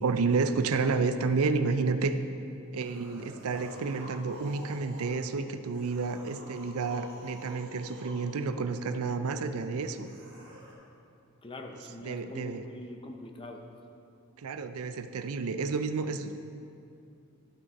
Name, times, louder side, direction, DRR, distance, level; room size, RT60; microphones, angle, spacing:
voice 1, 0.0-2.2 2.7-10.1 12.0-12.6 14.4-16.4, right 4 dB, 75° right, 9 dB, 0.4 m, -30 dB
sound 1, 2.7-5.2 5.7-8.3 9.9-10.7, right 1 dB, 55° right, 1.7 m, -49 dB
voice 2, 11.4-13.6, left 2 dB, 25° left, 3 dB, 0.6 m, -43 dB
12.0 x 5.9 x 4.0 m, 2.6 s
head